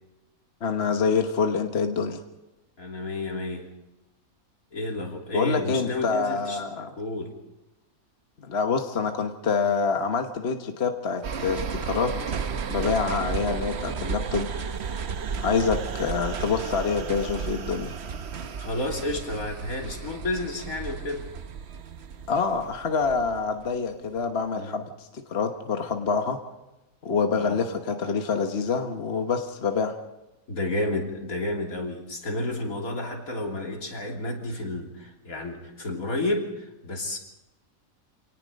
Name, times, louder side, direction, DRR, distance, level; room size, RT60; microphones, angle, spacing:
voice 1, 0.6-2.2 5.3-6.9 8.4-12.1 12.7-14.5 15.4-17.9 22.3-26.4 27.0-29.9, left 5 dB, 50° left, 5 dB, 1.4 m, -26 dB
voice 2, 2.8-3.7 4.7-6.6 7.0-7.4 15.5-15.6 18.6-21.3 24.5-24.9 27.3-27.6 30.5-37.2, left 2 dB, 75° left, 1 dB, 3.5 m, -31 dB
sound 1, 11.2-23.8 24.2-24.3, right 6 dB, 55° right, 1.1 m, -33 dB
27.5 x 18.5 x 5.3 m, 0.98 s
omnidirectional pair, 1.5 m